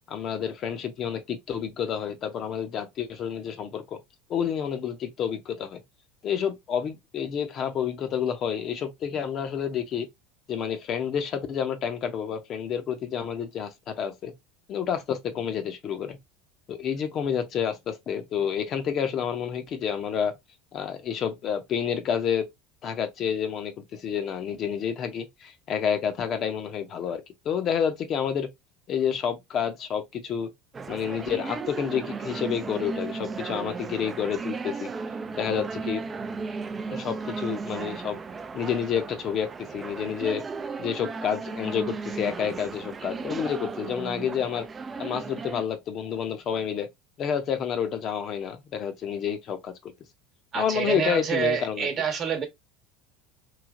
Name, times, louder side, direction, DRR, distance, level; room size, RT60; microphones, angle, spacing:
voice 1, 0.1-4.0 4.3-5.8 6.2-10.1 10.5-14.3 14.7-16.2 16.7-20.4 20.7-22.5 22.8-28.5 28.9-30.5 30.9-34.9 35.4-36.0 36.9-38.2 38.5-40.4 40.8-44.7 45.0-46.9 47.2-49.9 50.5-51.9, left 8 dB, 45° left, 0.7 m, -29 dB
sound 1, 30.7-45.6, right 4 dB, 25° right, 0.4 m, -35 dB
voice 2, 50.5-52.5, right 7 dB, 40° right, 1.1 m, -27 dB
3.2 x 2.7 x 2.4 m
hypercardioid pair, 90°, 0 cm